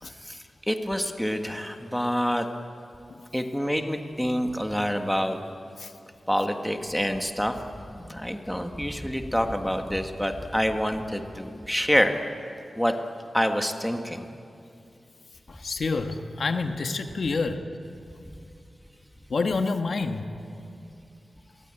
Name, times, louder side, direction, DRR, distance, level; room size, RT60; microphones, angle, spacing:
voice 1, 0.0-2.5 3.3-5.4 6.3-7.5 7.9-12.2 12.7-12.9 13.3-14.2, equal, ahead, 5 dB, 1.7 m, -27 dB
voice 2, 15.5-17.6 19.3-20.3, left 4 dB, 60° left, 6 dB, 1.5 m, -28 dB
28.0 x 22.5 x 9.0 m, 2.6 s
wide cardioid pair, 130°, 0 cm